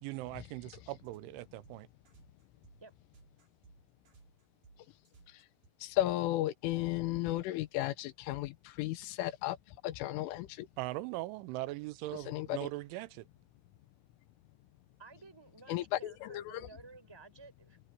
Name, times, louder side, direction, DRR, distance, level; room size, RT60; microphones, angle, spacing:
voice 1, 0.0-1.9 10.8-13.3, right 18 dB, 80° right, 3.0 m, -40 dB
sound 1, 0.6-5.9, right 4 dB, 40° right, 6.0 m, -62 dB
voice 2, 5.8-9.6 9.8-10.7 12.3-12.6 15.7-16.6, left 15 dB, 80° left, 3.5 m, -34 dB
voice 3, 15.0-17.8, right 3 dB, 5° right, 4.9 m, -54 dB
omnidirectional pair, 5.6 m